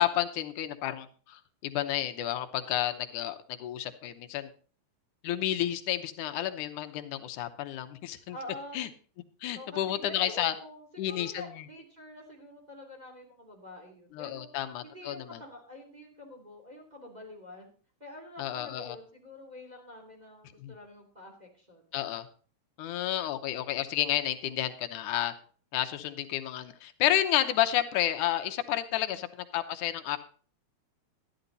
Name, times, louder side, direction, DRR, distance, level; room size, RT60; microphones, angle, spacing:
voice 1, 0.0-4.5 5.2-8.4 8.7-8.9 9.4-10.5 11.0-11.6 14.1-15.4 18.4-19.0 20.6-20.7 21.9-22.3 22.8-25.3 25.7-29.3 29.5-30.2, left 12 dB, 85° left, 8 dB, 2.3 m, -31 dB
voice 2, 8.3-8.8 9.5-14.5 14.8-17.7 18.0-21.9, left 1 dB, 15° right, -2 dB, 2.9 m, -47 dB
13.0 x 11.0 x 4.0 m, 0.42 s
omnidirectional pair, 3.5 m